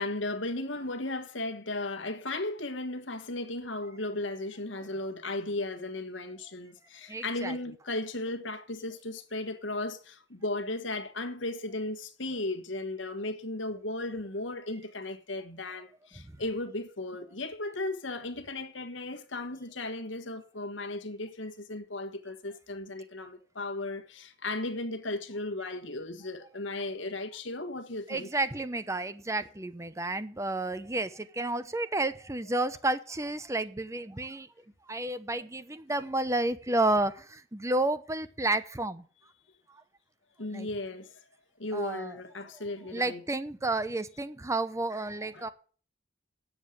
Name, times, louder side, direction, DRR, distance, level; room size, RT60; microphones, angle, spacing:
voice 1, 0.0-28.3 40.4-41.2 41.6-43.2 45.3-45.5, left 2 dB, 70° left, 1.5 m, -36 dB
voice 2, 7.1-7.5 16.2-16.3 28.1-34.5 34.9-39.0 40.5-40.7 41.7-42.1 42.9-45.5, right 2 dB, 15° right, 0.7 m, -31 dB
9.3 x 7.3 x 8.2 m
head